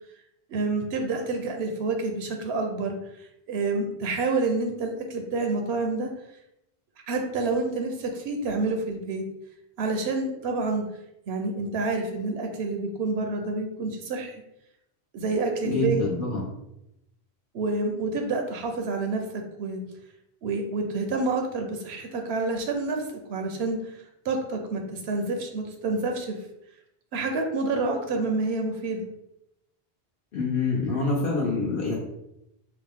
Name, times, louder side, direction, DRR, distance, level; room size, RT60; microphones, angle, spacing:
voice 1, 0.5-6.1 7.1-9.2 9.8-10.9 11.3-14.3 15.1-16.0 17.5-19.8 20.4-23.0 23.3-24.0 24.2-26.4 27.1-29.1, right 3 dB, 80° right, 4 dB, 0.8 m, -28 dB
voice 2, 15.6-16.4 30.3-32.0, left 3 dB, 60° left, -4 dB, 0.9 m, -26 dB
3.8 x 2.0 x 3.5 m, 0.83 s
omnidirectional pair, 1.1 m